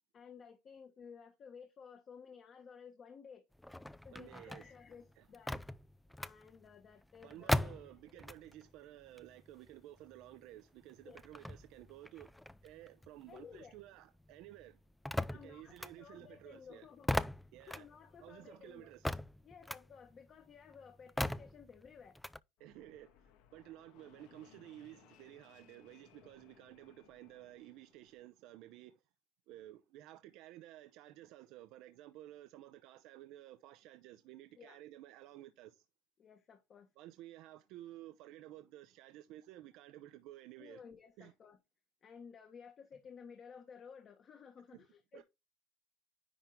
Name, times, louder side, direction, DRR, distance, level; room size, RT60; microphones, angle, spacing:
voice 1, 0.1-3.5 4.0-5.6 6.2-7.9 11.0-11.2 13.3-13.8 15.3-18.9 19.4-22.2 26.1-26.3 34.6-34.8 36.2-36.9 40.6-41.6 42.0-45.2, left 6 dB, 40° left, 1.5 m, -55 dB
sound 1, 3.5-8.7 9.0-13.9 14.2-22.4, left 1 dB, 5° left, 0.4 m, -40 dB
voice 2, 4.1-4.7 5.2-5.3 7.2-12.3 12.6-14.8 15.4-16.9 17.5-17.9 18.2-19.2 22.6-29.0 29.5-35.9 37.0-40.8 41.2-41.3 44.7-44.8 45.1-45.2, right 14 dB, 70° right, 0.7 m, -54 dB
Fixed-wing aircraft airplane, 22.6-28.2, left 10 dB, 75° left, 1.4 m, -65 dB
10.0 x 3.7 x 4.4 m
cardioid pair, 120°, 0 cm